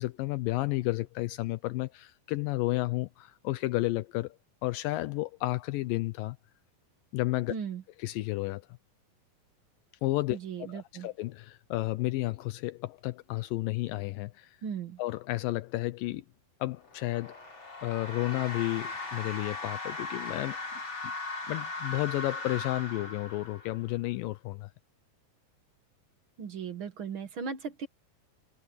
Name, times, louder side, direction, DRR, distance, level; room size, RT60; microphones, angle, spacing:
voice 1, 0.0-4.4 4.6-6.4 7.1-7.5 8.0-8.6 10.0-10.4 10.7-14.5 15.0-16.2 16.6-17.4 17.8-20.6 21.5-24.7, left 19 dB, 85° left, 1.9 m, -32 dB
voice 2, 7.5-7.8 10.3-11.1 14.6-15.0 26.4-27.9, right 6 dB, 75° right, 1.1 m, -37 dB
sound 1, 16.8-23.9, left 3 dB, 30° left, 5.9 m, -38 dB
omnidirectional pair, 4.7 m